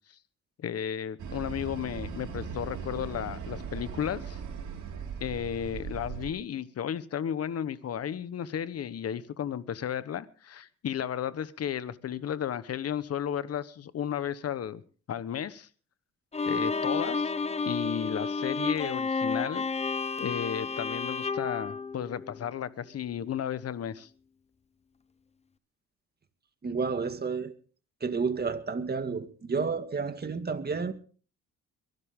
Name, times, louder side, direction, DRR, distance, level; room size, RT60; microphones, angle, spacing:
voice 1, 0.6-4.4 5.2-14.8 15.1-15.7 16.4-17.3 17.6-19.6 20.2-24.1, left 9 dB, 55° left, 1.1 m, -33 dB
sound 1, 1.2-6.3, right 6 dB, 75° right, 4.3 m, -39 dB
Bowed string instrument, 16.3-22.6, left 4 dB, 20° left, 0.8 m, -31 dB
voice 2, 26.6-27.5 28.0-30.9, right 5 dB, 35° right, 2.0 m, -31 dB
23.0 x 12.0 x 3.7 m
cardioid pair, 90°, 30 cm